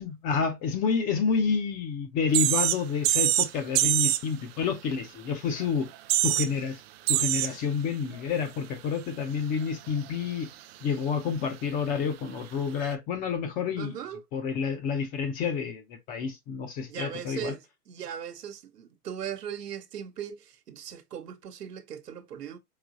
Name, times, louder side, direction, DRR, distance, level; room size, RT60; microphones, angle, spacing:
voice 1, 0.0-5.9 6.2-6.8 7.1-10.5 10.8-13.9 14.3-17.5, left 6 dB, 20° left, 0.4 m, -29 dB
sound 1, 2.3-2.8 3.0-3.5 3.8-4.2 5.6-5.7 5.9-6.5 7.1-7.5 8.1-8.2 12.8-12.9, right 14 dB, 45° right, 0.5 m, -24 dB
voice 2, 13.8-14.2 16.9-22.6, right 8 dB, 85° right, 1.0 m, -38 dB
4.8 x 2.9 x 2.5 m
hypercardioid pair, 115°, 46 cm